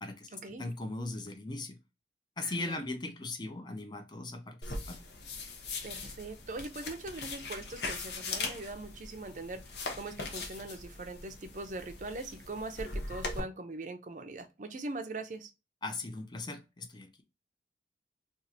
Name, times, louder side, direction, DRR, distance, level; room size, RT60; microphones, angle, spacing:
voice 1, 0.0-1.8 2.4-5.0 15.8-17.2, left 2 dB, 25° left, 0.6 m, -39 dB
voice 2, 2.4-2.8 5.8-15.5, right 2 dB, 45° right, 0.5 m, -41 dB
sound 1, 4.6-13.4, left 3 dB, 65° left, 0.7 m, -40 dB
2.6 x 2.5 x 4.1 m
head